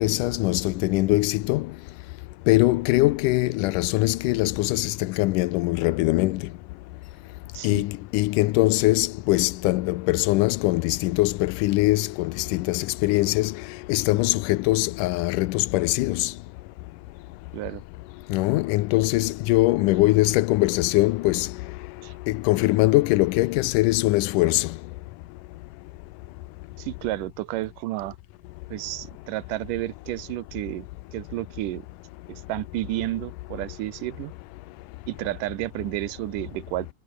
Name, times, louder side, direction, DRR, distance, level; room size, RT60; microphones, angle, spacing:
voice 1, 0.0-1.7 2.5-6.4 7.6-13.6 13.9-16.3 18.3-21.5 22.3-24.8, left 19 dB, 90° left, 2.2 m, -22 dB
voice 2, 26.8-28.1 28.7-31.9 32.3-34.3 35.1-36.9, right 17 dB, 85° right, 2.4 m, -31 dB
omnidirectional pair, 3.7 m